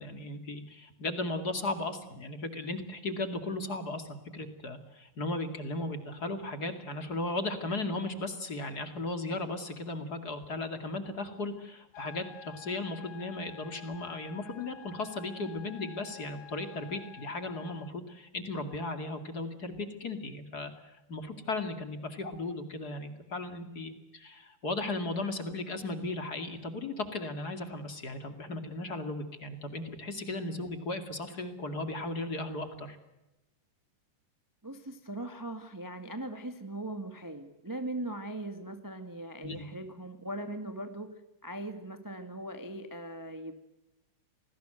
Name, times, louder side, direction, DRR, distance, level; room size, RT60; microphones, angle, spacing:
voice 1, 0.0-33.0 39.4-39.6, left 2 dB, 30° left, 8 dB, 2.5 m, -36 dB
sound 1, 11.9-17.9, left 12 dB, 75° left, 2.6 m, -50 dB
voice 2, 34.6-41.1 41.4-43.5, right 1 dB, 10° right, 7 dB, 0.8 m, -40 dB
27.5 x 20.0 x 7.8 m, 0.95 s
omnidirectional pair, 3.7 m